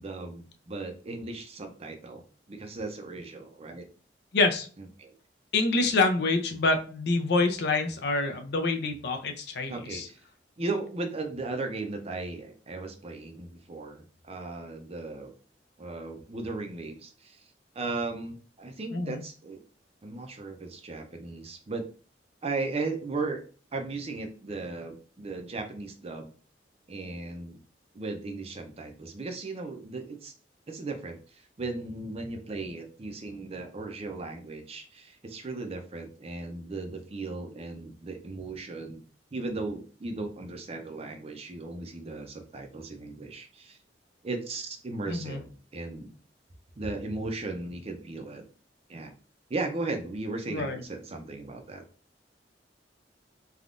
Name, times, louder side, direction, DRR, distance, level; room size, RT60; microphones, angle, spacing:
voice 1, 0.0-2.2 2.5-3.9 4.8-5.1 9.7-10.2 10.6-15.3 15.8-17.4 17.7-19.6 20.0-21.9 22.4-23.4 23.7-26.3 26.9-27.6 27.9-30.3 30.7-39.0 39.3-43.8 44.2-46.1 46.8-48.4 48.9-49.1 49.5-51.8, right 3 dB, 35° right, 5 dB, 0.5 m, -36 dB
voice 2, 4.3-4.7 5.5-10.1 18.9-19.2 45.1-45.4 50.5-50.8, left 3 dB, 65° left, 5 dB, 0.5 m, -26 dB
3.5 x 2.3 x 2.5 m, 0.39 s
head